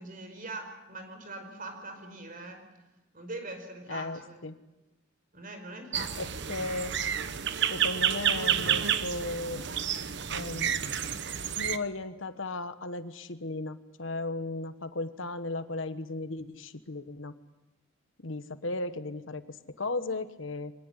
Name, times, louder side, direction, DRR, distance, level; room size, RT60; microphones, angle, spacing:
voice 1, 0.0-2.6 3.1-4.4 5.3-6.3, right 2 dB, 45° right, 6 dB, 5.1 m, -42 dB
voice 2, 3.9-4.6 6.2-6.9 7.7-9.7 10.3-11.1 11.5-17.3 18.2-20.7, left 2 dB, 70° left, 11 dB, 1.3 m, -36 dB
sound 1, 5.9-11.8, right 9 dB, 60° right, 1.1 m, -30 dB
24.5 x 18.5 x 9.8 m, 1.0 s
head